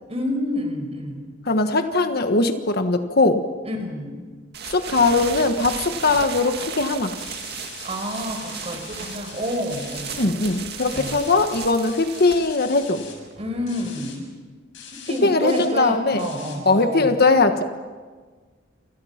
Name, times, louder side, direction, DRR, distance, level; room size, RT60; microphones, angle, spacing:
voice 1, 0.1-1.2 3.6-4.2 7.8-10.3 10.9-11.2 13.4-14.3 15.1-17.1, equal, 30° right, 4 dB, 5.5 m, -29 dB
voice 2, 1.5-3.4 4.7-7.1 10.1-13.0 15.2-16.3 16.6-17.6, left 3 dB, 55° left, 7 dB, 1.5 m, -20 dB
sound 1, 4.5-14.1, right 6 dB, 55° right, 2.1 m, -36 dB
sound 2, 7.2-13.1 13.7-14.1 14.7-15.2 15.5-15.7 16.2-16.6, left 7 dB, 70° left, 7.7 m, -42 dB
29.5 x 28.5 x 5.9 m, 1.5 s
head